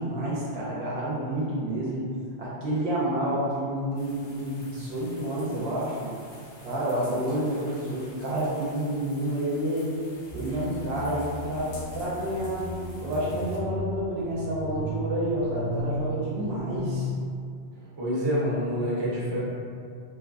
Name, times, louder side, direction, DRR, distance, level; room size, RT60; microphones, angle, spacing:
voice 1, 0.0-2.0 2.4-6.1 6.6-9.9 10.3-12.7 13.0-17.1 17.7-17.8, right 1 dB, 70° right, -7 dB, 0.8 m, -29 dB
sound 1, 4.0-13.6, left 1 dB, 80° left, 0.9 m, -50 dB
sound 2, 10.3-16.9, equal, 50° left, 0.5 m, -35 dB
voice 2, 18.0-19.4, equal, 30° right, -8 dB, 0.6 m, -27 dB
2.7 x 2.3 x 2.4 m, 2.3 s
omnidirectional pair, 1.2 m